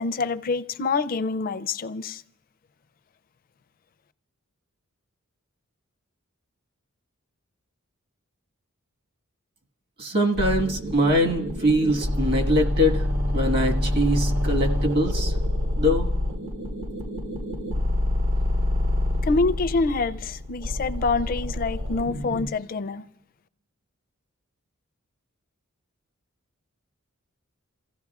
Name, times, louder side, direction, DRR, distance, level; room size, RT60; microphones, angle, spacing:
voice 1, 0.0-2.2 19.2-23.0, left 3 dB, 40° left, 0.4 m, -26 dB
voice 2, 10.0-13.1 13.3-15.3 15.7-16.1, equal, 50° right, 1.5 m, -23 dB
sound 1, 10.4-22.5, left 1 dB, 70° right, 1.4 m, -26 dB
28.0 x 15.0 x 2.4 m
head